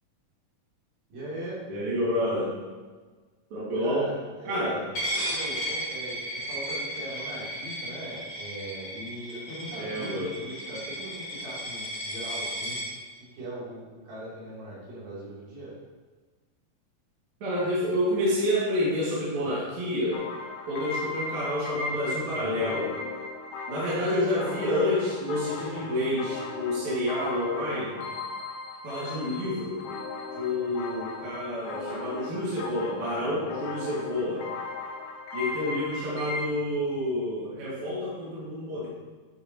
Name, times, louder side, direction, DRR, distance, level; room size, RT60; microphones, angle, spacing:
voice 1, 1.1-1.6 3.8-4.9 5.2-12.8 13.1-15.7, right 1 dB, 90° right, -9 dB, 4.9 m, -40 dB
voice 2, 1.7-2.5 3.5-4.1 4.4-4.8 9.8-10.3 17.4-20.2 20.7-22.9 23.7-28.0 28.8-29.8 30.3-34.4 35.3-38.9, left 1 dB, 60° right, -7 dB, 3.3 m, -28 dB
Coin (dropping), 4.9-12.9, equal, 40° left, 3.4 m, -34 dB
sound 1, 20.1-36.4, left 3 dB, 90° left, 1.3 m, -37 dB
9.6 x 8.2 x 2.9 m, 1.4 s
omnidirectional pair, 3.9 m